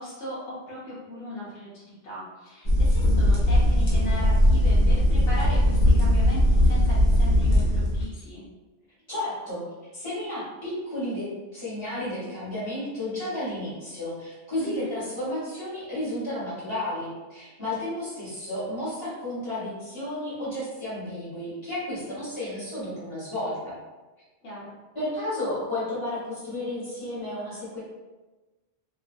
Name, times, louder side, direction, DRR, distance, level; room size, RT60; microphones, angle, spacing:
voice 1, 0.0-8.4 14.6-14.9 24.4-24.7, left 1 dB, 80° left, -8 dB, 1.0 m, -37 dB
sound 1, 2.6-8.0, left 1 dB, 55° left, 0.8 m, -20 dB
voice 2, 9.1-9.6 9.9-23.8 24.9-27.8, left 1 dB, 25° left, -10 dB, 1.1 m, -32 dB
2.5 x 2.3 x 2.5 m, 1.2 s
omnidirectional pair, 1.2 m